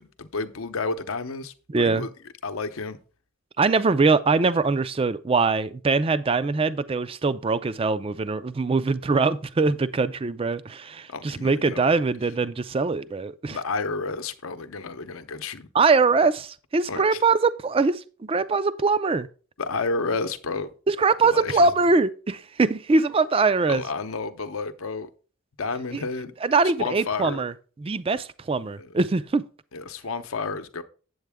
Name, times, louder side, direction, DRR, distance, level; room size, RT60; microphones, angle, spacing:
voice 1, 0.0-2.1 2.4-3.0 9.7-9.8 11.1-11.9 13.5-15.7 16.9-17.2 19.6-20.7 21.2-21.7 23.7-25.1 25.6-26.3 26.8-27.4 28.8-28.9 29.7-30.8, left 4 dB, 80° left, 0.8 m, -31 dB
voice 2, 1.7-2.1 3.6-13.6 15.7-19.3 20.9-23.8 25.9-26.0 26.4-27.5 27.8-29.4, right 4 dB, 25° right, 0.4 m, -22 dB
8.2 x 7.9 x 3.5 m
head